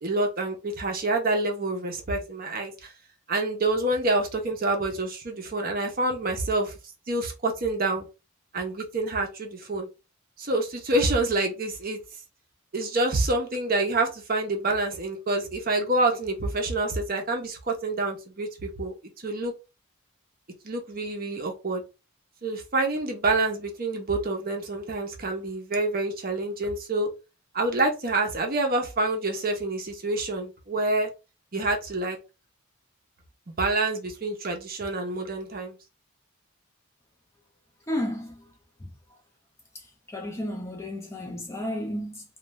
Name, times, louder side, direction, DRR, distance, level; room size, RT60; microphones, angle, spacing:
voice 1, 0.0-2.9 3.3-6.7 7.1-8.0 8.5-9.9 10.4-12.0 12.7-19.5 20.6-21.8 22.4-27.1 27.5-31.1 31.5-32.2 33.6-35.8, right 2 dB, 40° right, 0.6 m, -27 dB
voice 2, 37.9-38.4 38.8-38.9 40.1-42.2, left 1 dB, 10° left, 0.5 m, -32 dB
2.5 x 2.2 x 3.1 m
head